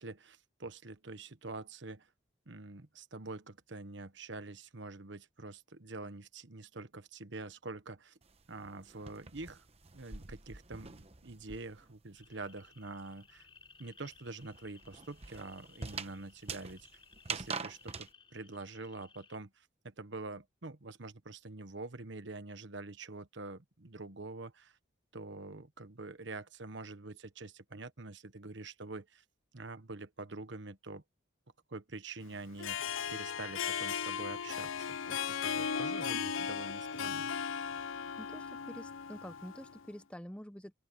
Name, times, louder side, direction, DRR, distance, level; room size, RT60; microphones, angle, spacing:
voice 1, 0.0-2.1 2.5-8.2 8.5-9.7 9.9-13.5 13.8-16.9 17.3-24.8 25.1-29.2 29.5-31.0 31.7-37.3, right 3 dB, 65° right, 1.2 m, -46 dB
sound 1, 8.2-12.0 12.2-18.1, right 5 dB, 30° right, 1.0 m, -45 dB
sound 2, 12.1-19.4, left 5 dB, 25° left, 4.2 m, -61 dB
Harp, 32.4-39.8, left 7 dB, 85° left, 0.6 m, -37 dB
voice 2, 38.2-40.7, equal, 5° left, 0.8 m, -47 dB
open air
head